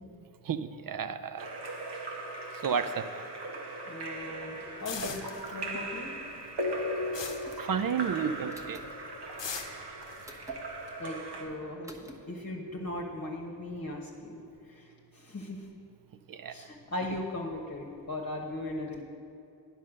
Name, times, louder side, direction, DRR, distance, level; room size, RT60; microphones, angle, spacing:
voice 1, 0.5-1.5 2.6-3.2 7.6-8.8 16.3-16.5, right 7 dB, 50° right, 12 dB, 0.5 m, -32 dB
Splash splatter / Drip / Trickle dribble, 1.4-11.4, right 1 dB, 70° right, 1.2 m, -38 dB
voice 2, 3.9-5.2 5.5-6.1 11.0-14.4 14.7-15.6 16.5-19.0, left 1 dB, 40° left, 0 dB, 1.1 m, -38 dB
sound 1, 4.8-6.0 6.3-8.3 8.6-8.9 9.4-11.3, left 7 dB, 80° left, 0.8 m, -41 dB
sound 2, 7.2-7.6 8.5-8.9 10.2-10.6 11.8-12.1, right 1 dB, 5° right, 1.1 m, -49 dB
9.5 x 5.5 x 6.4 m, 2.7 s
cardioid pair, 45°, 42 cm